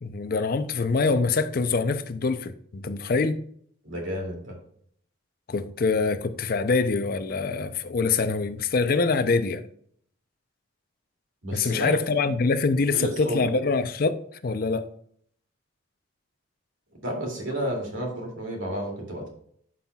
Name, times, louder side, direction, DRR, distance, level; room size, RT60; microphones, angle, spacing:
voice 1, 0.0-3.4 5.5-9.6 11.5-14.9, left 4 dB, 50° left, 0.5 m, -25 dB
voice 2, 3.8-4.5 11.4-12.0 12.9-13.6 17.0-19.3, equal, 80° right, 2.4 m, -31 dB
11.5 x 5.6 x 2.3 m
head